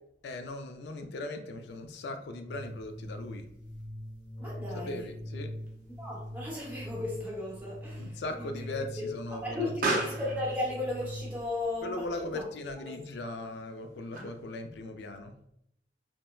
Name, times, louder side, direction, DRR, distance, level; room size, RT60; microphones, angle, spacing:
voice 1, 0.2-3.5 4.7-5.5 8.0-10.0 11.8-15.3, left 2 dB, 70° left, 7 dB, 0.3 m, -39 dB
sound 1, 2.5-11.5, equal, 10° left, 1.1 m, -42 dB
voice 2, 4.4-5.1 6.0-8.5 9.0-9.1 9.3-12.0 12.3-12.4 12.8-12.9, left 2 dB, 10° right, -5 dB, 0.7 m, -35 dB
Explosion, 5.6-14.6, right 2 dB, 50° right, 0.5 m, -40 dB
3.0 x 2.0 x 2.2 m, 0.75 s
head